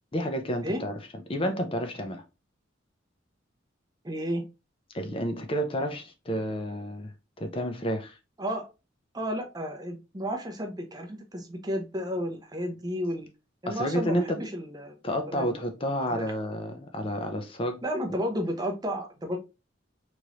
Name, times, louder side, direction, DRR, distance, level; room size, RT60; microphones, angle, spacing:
voice 1, 0.1-0.9 1.3-2.2 4.9-8.2 13.7-14.5 15.0-17.8, equal, 25° left, 0.5 m, -30 dB
voice 2, 4.0-4.4 8.4-8.7 9.1-13.3 13.6-15.0 15.3-15.6 16.2-16.3 17.8-19.4, equal, 20° right, 0.6 m, -32 dB
3.1 x 2.9 x 2.4 m
head